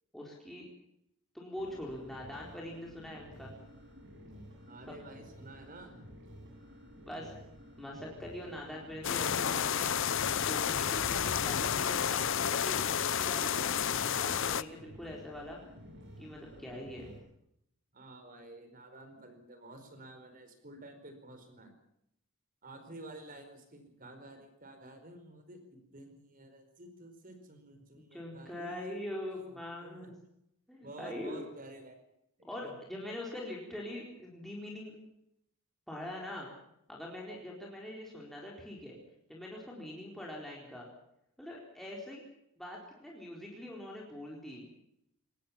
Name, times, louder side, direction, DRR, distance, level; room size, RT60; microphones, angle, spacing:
voice 1, 0.1-0.7 1.3-3.5 7.1-7.3 7.8-9.9 10.3-15.6 16.2-17.1 28.0-30.1 30.7-31.4 32.4-34.9 35.9-36.5 36.9-39.0 39.3-40.9 41.4-42.2 42.6-44.7, left 1 dB, ahead, -3 dB, 4.2 m, -43 dB
sound 1, 1.6-17.2, equal, 55° right, 8.0 m, -52 dB
voice 2, 4.7-6.0 17.9-21.8 22.6-29.0 29.3-30.1 30.8-31.9 32.4-32.7, right 2 dB, 40° right, 7 dB, 4.7 m, -51 dB
sound 2, 9.0-14.6, left 8 dB, 60° left, 0.7 m, -31 dB
23.0 x 18.5 x 7.3 m, 0.79 s
head